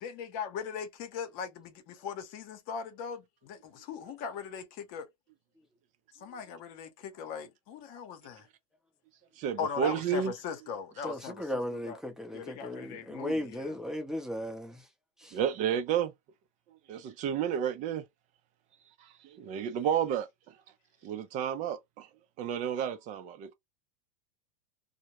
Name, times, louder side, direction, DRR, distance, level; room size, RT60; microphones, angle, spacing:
voice 1, 0.0-5.1 6.2-8.5 9.6-12.0 12.3-13.7, left 6 dB, 55° left, 0.8 m, -39 dB
voice 2, 9.4-10.3 15.3-16.1 16.9-18.0 19.2-20.3 21.0-22.1 22.4-23.5, right 8 dB, 45° right, 0.5 m, -31 dB
voice 3, 11.0-14.9 15.2-15.4, equal, 5° right, 0.7 m, -36 dB
2.2 x 2.1 x 2.9 m
hypercardioid pair, 105°, 18 cm